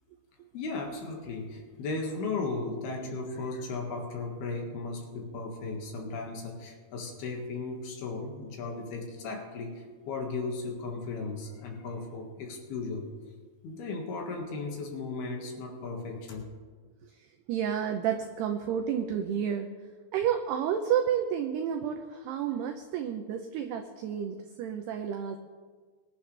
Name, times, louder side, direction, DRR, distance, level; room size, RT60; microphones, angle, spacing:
voice 1, 0.5-13.0 13.6-16.4, left 3 dB, 60° left, 1 dB, 3.3 m, -36 dB
voice 2, 17.0-19.7 20.1-25.4, right 8 dB, 85° right, 5 dB, 2.3 m, -31 dB
23.0 x 11.5 x 3.3 m, 1.5 s
omnidirectional pair, 5.6 m